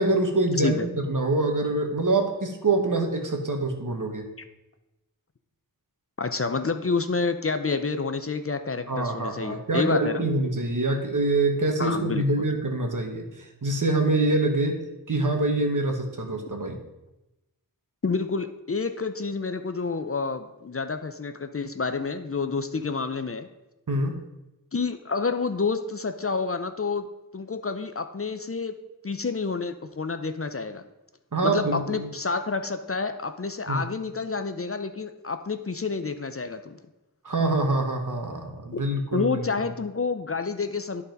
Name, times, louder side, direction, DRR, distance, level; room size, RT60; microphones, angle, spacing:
voice 1, 0.0-4.3 8.9-13.3 13.6-14.8 15.1-16.8 23.9-24.2 31.3-32.1 33.7-33.8 37.2-39.4, right 2 dB, 55° right, 4 dB, 1.3 m, -25 dB
voice 2, 0.6-0.9 6.2-10.3 11.8-12.5 18.0-23.5 24.7-27.1 27.3-28.7 29.0-30.8 31.4-36.8 38.7-38.8 39.1-41.0, left 4 dB, 40° left, 9 dB, 0.6 m, -29 dB
10.5 x 4.2 x 5.2 m, 0.97 s
wide cardioid pair, 50°, 36 cm